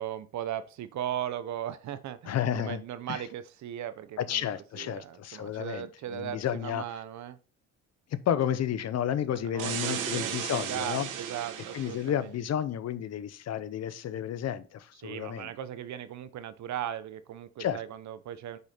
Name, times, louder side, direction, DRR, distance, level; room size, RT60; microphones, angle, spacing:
voice 1, 0.0-4.5 4.7-7.4 9.4-12.3 15.0-18.6, right 10 dB, 70° right, 14 dB, 0.8 m, -38 dB
voice 2, 2.2-2.8 3.1-3.2 4.2-6.8 8.3-11.1 11.7-15.5 17.6-17.8, left 10 dB, 60° left, 14 dB, 0.7 m, -31 dB
sound 1, 9.6-12.1, right 9 dB, 90° right, 1.2 m, -35 dB
6.8 x 4.9 x 4.3 m, 0.37 s
cardioid pair, 90°, 30 cm